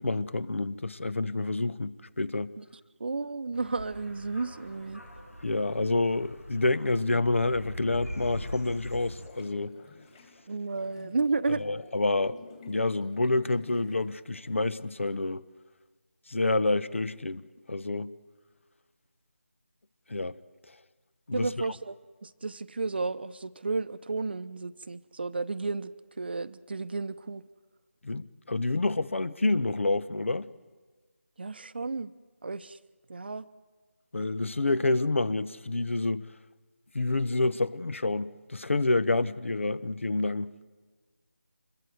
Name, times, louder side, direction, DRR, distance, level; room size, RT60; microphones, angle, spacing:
voice 1, 0.0-2.5 5.4-9.8 11.6-12.4 12.7-15.4 16.3-18.1 20.1-20.4 21.3-21.5 28.0-30.5 34.1-36.2 36.9-40.6, left 2 dB, 60° left, 1.0 m, -28 dB
voice 2, 3.0-5.0 10.5-11.6 21.3-22.0 22.2-27.4 31.4-32.1 32.4-32.8 33.1-33.5, right 3 dB, 45° right, 0.8 m, -32 dB
sound 1, 3.5-9.3, equal, 90° left, 7.1 m, -42 dB
sound 2, 8.5-15.2, left 4 dB, 20° left, 2.7 m, -52 dB
25.5 x 22.0 x 7.9 m
figure-of-eight pair, 165°, 8 cm